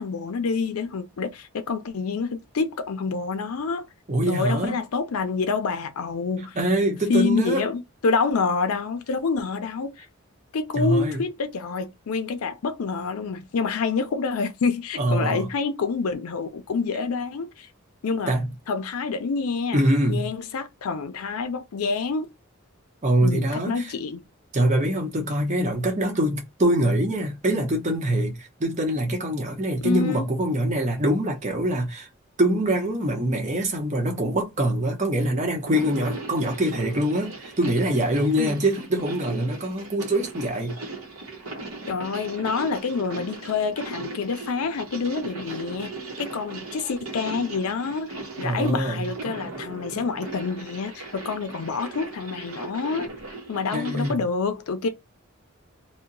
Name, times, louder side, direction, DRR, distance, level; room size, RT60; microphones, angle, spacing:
voice 1, 0.0-3.9 4.3-6.6 7.1-10.1 10.5-17.7 18.0-18.3 18.7-19.8 20.1-22.3 23.2-24.2 29.8-30.2 38.4-38.6 41.9-53.1 53.5-54.9, left 4 dB, 85° left, 0.5 m, -27 dB
voice 2, 4.1-4.8 6.5-7.7 10.7-11.2 15.0-15.5 18.3-18.5 19.7-20.3 23.0-23.9 24.5-32.1 32.4-40.8 48.4-49.1 53.7-54.2, right 1 dB, 35° right, 0.8 m, -24 dB
sound 1, 35.5-54.2, right 3 dB, 75° right, 0.9 m, -38 dB
2.7 x 2.2 x 3.8 m
head